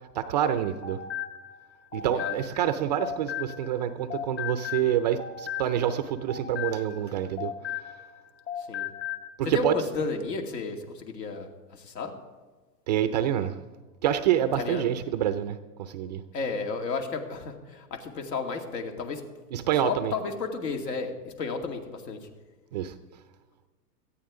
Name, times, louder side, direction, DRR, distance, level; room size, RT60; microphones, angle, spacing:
voice 1, 0.1-1.0 1.9-7.5 9.5-9.7 12.9-13.6 14.0-16.2 19.5-20.1 22.7-22.9, right 10 dB, 30° right, 11 dB, 0.4 m, -27 dB
sound 1, 0.6-3.8 4.1-8.2 8.5-9.3, left 10 dB, 30° left, 1.3 m, -36 dB
voice 2, 2.0-2.3 8.6-8.9 9.4-12.1 14.5-14.9 16.3-19.2 19.8-22.3, left 4 dB, 80° left, 4 dB, 2.5 m, -33 dB
18.0 x 13.5 x 3.7 m, 1.3 s
hypercardioid pair, 135°, 48 cm